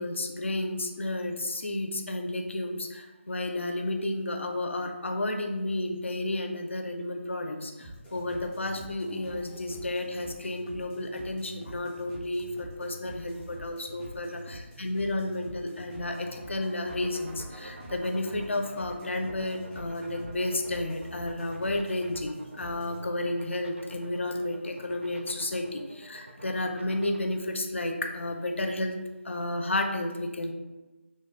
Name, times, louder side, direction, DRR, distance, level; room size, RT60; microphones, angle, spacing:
voice 1, 0.0-28.9 29.2-30.5, left 1 dB, 65° left, 5 dB, 0.4 m, -32 dB
sound 1, 7.8-23.0, right 1 dB, 5° left, 0.4 m, -46 dB
sound 2, 16.8-27.2, right 2 dB, 70° right, 0.5 m, -47 dB
3.1 x 2.2 x 3.5 m, 1.2 s
figure-of-eight pair, 160°, 7 cm